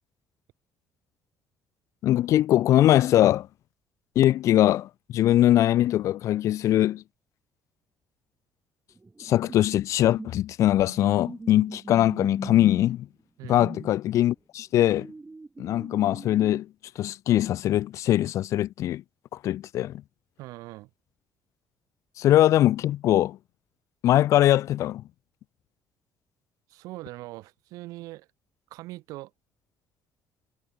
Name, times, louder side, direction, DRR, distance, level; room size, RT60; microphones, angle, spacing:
voice 1, 2.0-3.5 4.2-7.0 9.2-13.1 13.5-15.1 15.6-16.7 17.0-19.0 19.4-20.0 22.2-23.4 24.0-25.0, left 13 dB, 60° left, 0.4 m, -22 dB
sound 1, 8.9-10.4 10.7-13.0 13.6-14.0 14.8-16.6, right 3 dB, 15° right, 1.1 m, -42 dB
voice 2, 20.4-20.9 26.7-28.3 28.7-29.3, right 19 dB, 85° right, 2.4 m, -41 dB
cardioid pair, 115°, 6 cm